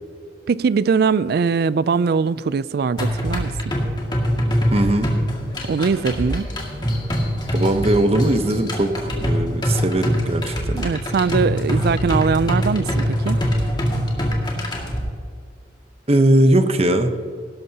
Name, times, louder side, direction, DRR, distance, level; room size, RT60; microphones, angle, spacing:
voice 1, 0.5-3.7 5.6-6.5 10.7-13.4, right 5 dB, 60° right, 0.4 m, -21 dB
sound 1, 3.0-15.0, equal, 25° left, 2.1 m, -23 dB
voice 2, 4.7-5.1 7.5-10.8 16.1-17.1, right 1 dB, 35° right, 0.9 m, -19 dB
17.5 x 12.5 x 2.8 m
head